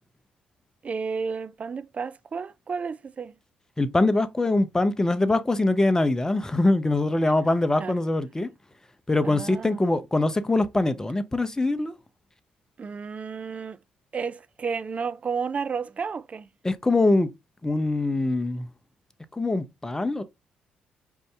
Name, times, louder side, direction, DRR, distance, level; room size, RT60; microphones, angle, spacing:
voice 1, 0.8-3.4 7.8-7.9 9.2-10.0 12.8-13.8 14.1-16.5, right 5 dB, 40° right, 0.4 m, -32 dB
voice 2, 3.8-8.5 9.1-11.9 16.6-17.3 17.6-18.7 19.3-20.2, left 2 dB, 15° left, 0.6 m, -23 dB
4.5 x 2.6 x 3.4 m
hypercardioid pair, 45°, 4 cm